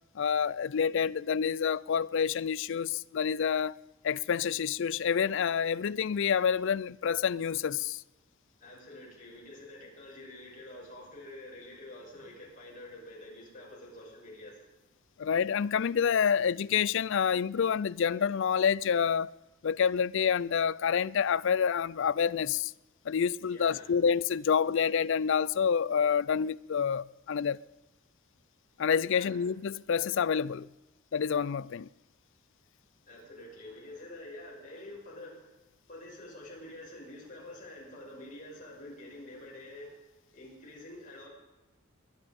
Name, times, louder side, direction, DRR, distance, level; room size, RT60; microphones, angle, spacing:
voice 1, 0.2-3.8 4.0-8.0 15.2-19.3 19.6-22.7 23.1-27.6 28.8-30.7 31.1-31.9, left 7 dB, 60° left, 0.4 m, -28 dB
voice 2, 8.6-14.6 23.5-23.9 29.0-29.3 33.1-35.5 35.9-40.0 40.3-41.3, left 1 dB, 40° left, 6.7 m, -47 dB
23.0 x 11.0 x 5.3 m
head